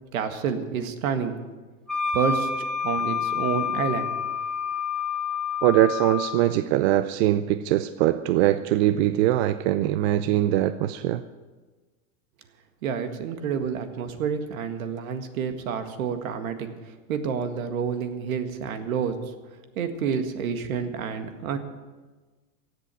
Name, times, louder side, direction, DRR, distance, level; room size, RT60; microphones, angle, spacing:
voice 1, 0.1-1.4 2.1-2.5 2.8-4.1 12.8-19.2 19.8-21.6, right 6 dB, 75° right, 8 dB, 1.9 m, -29 dB
Wind instrument woodwind instrument, 1.9-6.4, left 6 dB, ahead, 1.4 m, -28 dB
voice 2, 5.6-11.2, right 13 dB, 50° right, 12 dB, 0.6 m, -22 dB
16.5 x 7.7 x 9.2 m, 1.3 s
supercardioid pair, 140°, 42 cm